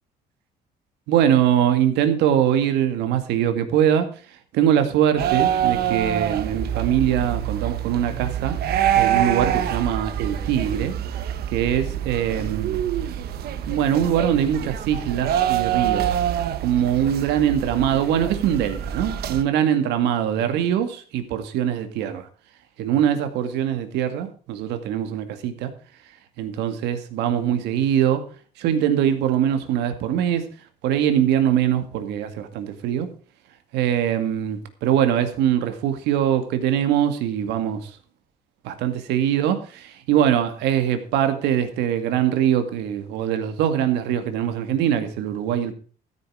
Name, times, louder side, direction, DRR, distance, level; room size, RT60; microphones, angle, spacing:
voice 1, 1.1-4.1 4.5-8.6 8.9-11.0 11.5-12.8 13.7-16.2 16.6-22.3 22.8-25.7 26.4-28.2 28.6-30.5 30.8-33.1 33.7-37.9 38.6-45.7, right 10 dB, 90° right, 2.2 m, -22 dB
sound 1, 5.2-19.4, right 10 dB, 70° right, 1.3 m, -25 dB
14.0 x 9.4 x 4.8 m
cardioid pair, 110°, 17 cm